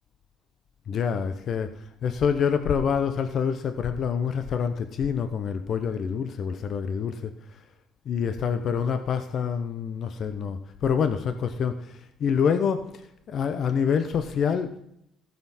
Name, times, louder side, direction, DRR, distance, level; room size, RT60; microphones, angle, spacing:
voice 1, 0.9-1.7 2.0-7.3 8.1-12.9 13.3-14.7, left 7 dB, 55° left, 8 dB, 0.8 m, -26 dB
14.5 x 6.9 x 4.3 m, 0.76 s
cardioid pair, 100°, 0 cm